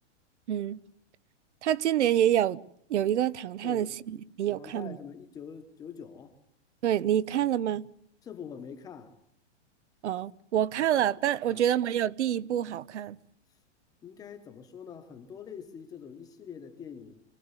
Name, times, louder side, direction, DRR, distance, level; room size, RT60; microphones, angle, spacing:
voice 1, 0.5-0.8 1.6-2.6 2.9-5.0 6.8-7.9 10.0-13.2, right 11 dB, 75° right, 1.0 m, -27 dB
voice 2, 3.6-4.2 4.5-6.4 8.2-9.2 11.5-11.7 14.0-17.2, left 7 dB, 10° left, 1.3 m, -45 dB
25.0 x 16.0 x 9.7 m
supercardioid pair, 175°, 35 cm